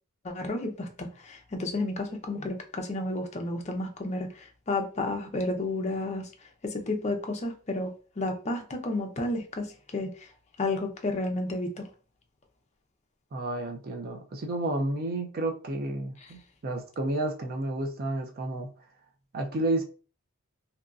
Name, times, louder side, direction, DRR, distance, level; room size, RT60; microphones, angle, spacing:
voice 1, 0.2-6.3 6.6-10.3 10.6-11.9 16.2-16.3, left 2 dB, 30° left, 0.5 m, -32 dB
voice 2, 13.3-18.7 19.3-19.8, right 2 dB, 45° right, 0.4 m, -31 dB
2.9 x 2.5 x 2.3 m
head